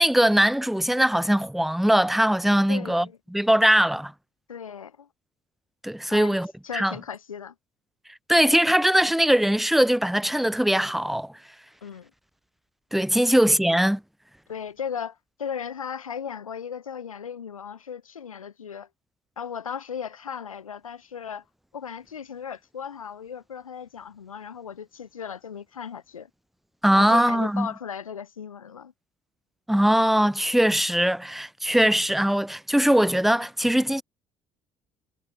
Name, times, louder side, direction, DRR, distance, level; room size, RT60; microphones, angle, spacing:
voice 1, 0.0-4.1 5.8-6.5 6.7-6.9 8.3-11.3 12.9-14.0 26.8-27.7 29.7-34.0, right 1 dB, ahead, 0.5 m, -21 dB
voice 2, 2.7-3.2 4.5-5.1 6.1-6.4 6.6-7.5 11.8-12.1 13.2-13.4 14.5-18.9 19.4-21.4 21.7-26.3 26.9-28.9, left 7 dB, 90° left, 0.4 m, -36 dB
figure-of-eight pair, 55°, 17 cm